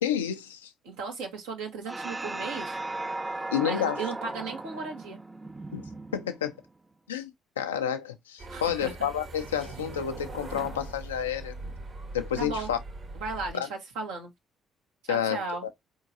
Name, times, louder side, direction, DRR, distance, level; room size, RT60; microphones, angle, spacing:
voice 1, 0.0-0.7 3.5-4.0 5.7-5.8 6.1-6.5 7.1-7.3 7.6-11.6 12.1-12.8 13.5-13.7 15.1-15.7, left 9 dB, 85° left, 0.6 m, -30 dB
voice 2, 0.8-2.8 3.3-5.2 8.5-8.9 12.4-12.7 13.2-14.3 15.0-15.6, right 4 dB, 75° right, 1.6 m, -36 dB
sound 1, 1.9-6.6, right 2 dB, 20° right, 0.5 m, -37 dB
sound 2, 8.4-13.5, right 2 dB, 50° right, 1.7 m, -41 dB
4.5 x 3.6 x 2.7 m
hypercardioid pair, 50°, 0 cm